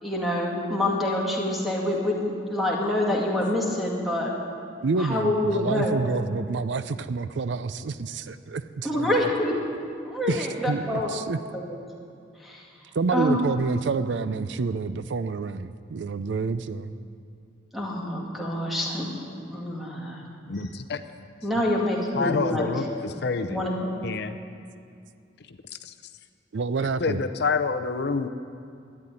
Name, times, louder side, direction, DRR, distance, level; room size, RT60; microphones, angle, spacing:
voice 1, 0.0-4.3 5.0-5.9 8.8-9.6 10.0-11.7 12.4-12.7 13.1-13.4 17.7-19.1 19.4-20.3 21.4-22.9 23.5-23.9, left 1 dB, ahead, -3 dB, 2.2 m, -26 dB
voice 2, 4.8-9.3 10.3-11.4 12.9-16.9 20.1-20.4 26.5-27.2, right 4 dB, 70° right, 13 dB, 0.5 m, -28 dB
voice 3, 20.5-21.0 22.1-22.9 23.2-23.6 24.0-24.4 25.5-25.6 25.8-25.9 27.0-28.3, left 4 dB, 60° left, 9 dB, 0.6 m, -27 dB
12.5 x 9.8 x 9.8 m, 2.4 s
head